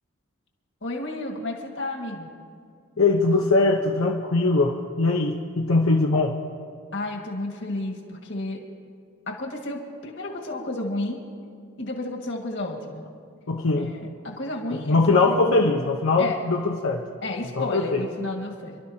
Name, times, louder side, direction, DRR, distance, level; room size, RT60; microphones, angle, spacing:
voice 1, 0.8-2.3 6.9-8.6 9.3-11.2 11.8-13.0 13.7-15.4 16.2-16.5 17.2-18.8, left 2 dB, 60° left, 0 dB, 1.9 m, -32 dB
voice 2, 3.0-6.3 13.5-13.9 14.9-17.0 17.6-18.0, left 3 dB, 90° left, 0 dB, 0.9 m, -21 dB
28.5 x 12.0 x 2.9 m, 2.2 s
head